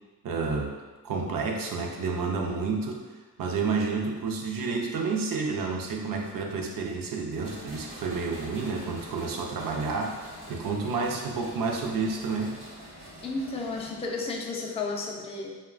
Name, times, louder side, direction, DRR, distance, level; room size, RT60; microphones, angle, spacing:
voice 1, 0.2-0.7 1.0-3.1 3.4-10.2 10.5-12.6, right 4 dB, 60° right, 1 dB, 0.5 m, -30 dB
sound 1, 7.4-14.5, right 1 dB, 85° right, 0.8 m, -45 dB
voice 2, 13.2-15.6, left 3 dB, 15° left, 0 dB, 0.3 m, -33 dB
2.9 x 2.1 x 2.4 m, 1.3 s
cardioid pair, 50°, 39 cm